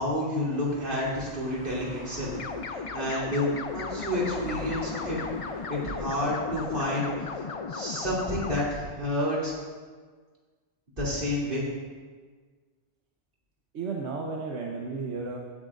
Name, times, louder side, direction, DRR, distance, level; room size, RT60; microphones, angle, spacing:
voice 1, 0.0-2.3 2.7-5.2 5.7-7.1 7.7-9.5 11.0-11.7, left 1 dB, 50° right, -6 dB, 3.0 m, -29 dB
sound 1, 0.7-8.5, equal, 70° left, 2.5 m, -45 dB
sound 2, 2.3-8.6, left 5 dB, 45° left, 0.5 m, -36 dB
voice 2, 13.7-15.4, right 4 dB, 80° right, -1 dB, 1.2 m, -33 dB
17.0 x 9.1 x 2.5 m, 1.5 s
omnidirectional pair, 1.1 m